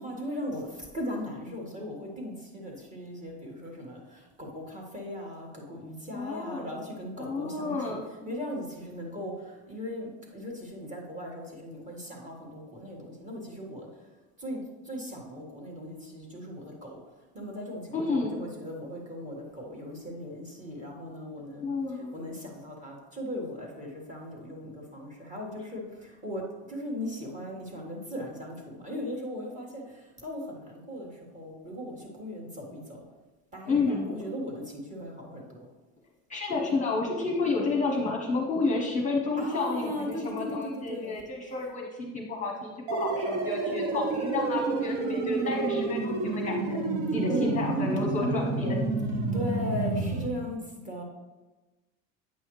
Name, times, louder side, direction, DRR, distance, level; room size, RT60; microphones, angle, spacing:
voice 1, 0.0-14.1 14.4-17.0 17.3-33.1 33.5-35.7 39.4-41.2 47.3-47.8 49.3-51.0, left 1 dB, 20° right, -1 dB, 1.7 m, -38 dB
voice 2, 6.1-6.7 7.2-8.0 17.9-18.4 21.6-22.1 33.7-34.1 36.3-46.8 47.1-48.8, left 3 dB, 20° left, 0 dB, 0.9 m, -30 dB
sound 1, 42.9-50.3, right 3 dB, 75° right, 1.0 m, -29 dB
8.5 x 5.5 x 3.1 m, 1.1 s
supercardioid pair, 130°, 34 cm